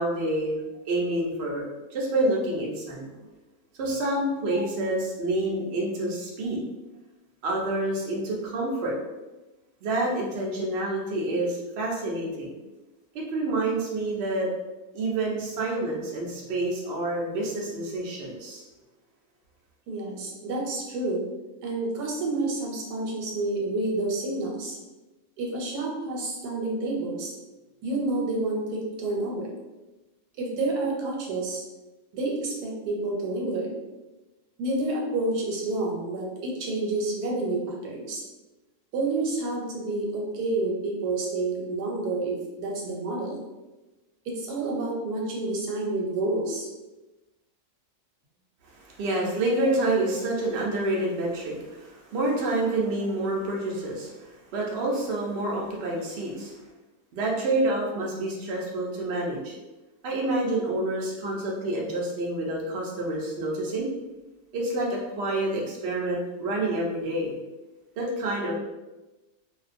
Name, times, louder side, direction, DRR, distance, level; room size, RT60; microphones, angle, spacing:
voice 1, 0.0-1.6 1.9-3.3 3.8-6.6 7.4-9.0 9.8-12.5 13.1-14.5 14.9-18.6 48.7-56.6 57.1-59.5 60.0-63.9 64.5-67.3 68.0-68.5, right 2 dB, 65° right, -2 dB, 0.6 m, -28 dB
voice 2, 19.9-21.2 21.6-24.8 25.4-27.4 27.8-29.5 30.4-31.6 32.1-33.7 34.6-38.2 38.9-43.4 44.3-46.7, right 2 dB, 85° right, -2 dB, 1.2 m, -29 dB
2.5 x 2.1 x 2.4 m, 1.1 s
omnidirectional pair, 1.7 m